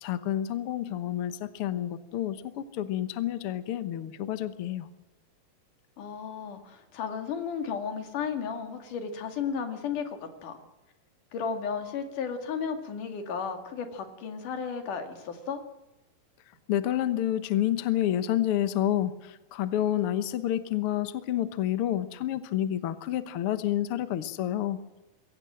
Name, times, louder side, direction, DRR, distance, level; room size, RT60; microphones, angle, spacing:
voice 1, 0.0-4.9 16.7-24.8, left 12 dB, 80° left, 12 dB, 1.2 m, -29 dB
voice 2, 6.0-10.6 11.3-15.6, left 6 dB, 65° left, 6 dB, 3.5 m, -34 dB
22.5 x 17.0 x 7.6 m, 1.1 s
omnidirectional pair, 4.2 m